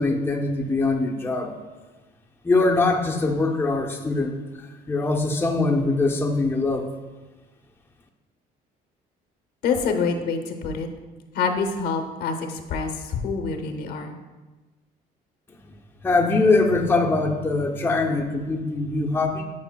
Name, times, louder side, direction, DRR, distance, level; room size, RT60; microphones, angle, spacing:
voice 1, 0.0-1.5 2.4-4.3 4.9-6.9 16.0-19.4, left 3 dB, 15° left, 1 dB, 0.6 m, -22 dB
voice 2, 9.6-10.9 11.3-14.1, left 5 dB, 70° left, 6 dB, 0.8 m, -26 dB
9.6 x 4.9 x 2.2 m, 1.2 s
cardioid pair, 110°, 17 cm